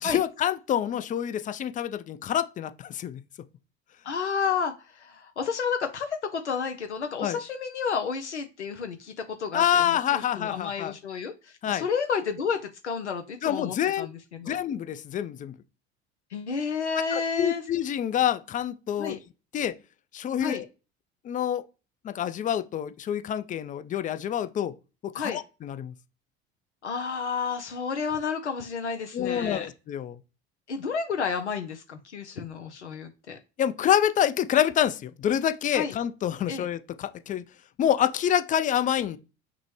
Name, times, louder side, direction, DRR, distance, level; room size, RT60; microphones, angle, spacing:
voice 1, 0.0-3.2 7.2-7.4 9.5-10.9 11.6-11.9 13.4-14.1 14.5-15.5 17.1-19.2 19.5-19.7 20.1-20.7 21.2-21.6 22.0-24.7 25.0-25.9 29.1-30.2 33.6-37.4 37.8-39.2, left 10 dB, 25° left, 0.4 m, -27 dB
voice 2, 4.0-14.6 16.3-17.6 19.0-19.2 20.4-20.6 25.2-25.4 26.8-29.7 30.7-33.4 35.7-35.9 36.5-36.7, left 6 dB, 90° left, 0.5 m, -31 dB
5.9 x 2.0 x 3.1 m
figure-of-eight pair, 65°, 34 cm